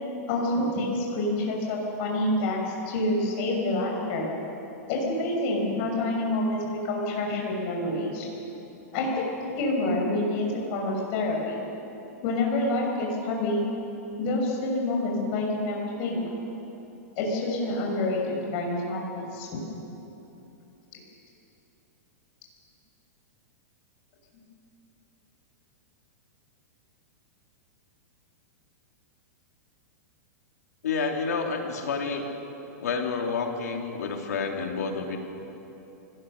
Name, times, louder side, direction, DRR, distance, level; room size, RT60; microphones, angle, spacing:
voice 1, 0.3-4.2 4.9-8.3 8.9-9.3 9.5-11.6 12.2-13.6 14.2-16.3 17.2-19.6 20.9-21.0 24.3-24.4, left 2 dB, 45° left, -1 dB, 5.7 m, -27 dB
voice 2, 30.8-32.3 32.8-35.2, left 5 dB, 85° left, 2 dB, 3.1 m, -29 dB
25.0 x 18.0 x 6.6 m, 3.0 s
hypercardioid pair, 145°, 9 cm